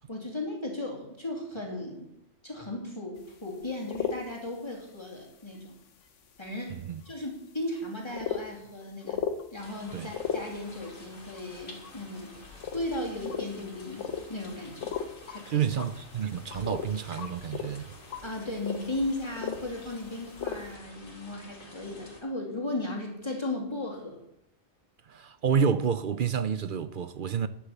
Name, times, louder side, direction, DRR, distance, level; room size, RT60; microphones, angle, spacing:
voice 1, 0.1-2.1 2.4-5.7 6.4-6.8 7.0-9.2 9.5-12.3 12.7-14.9 15.3-15.7 18.2-24.2, left 1 dB, 20° left, 2.8 m, -36 dB
sound 1, 3.1-3.2 3.6-4.2 4.7-4.9 5.5-5.6 6.5-6.6 7.1-7.2 7.8-7.9 8.1-8.4 9.0-9.4 9.9-10.9 11.3-11.9 12.4-12.9 13.1-13.5 14.0-14.4 14.7-15.4 15.7-16.9 17.2-20.1 20.3-20.7, left 7 dB, 70° left, 1.3 m, -35 dB
voice 2, 6.7-7.0 9.9-10.1 15.5-17.9 25.1-27.5, right 7 dB, 55° right, 0.6 m, -29 dB
sound 2, 9.6-22.2, left 2 dB, 85° left, 3.0 m, -50 dB
12.0 x 6.8 x 8.2 m
omnidirectional pair, 1.3 m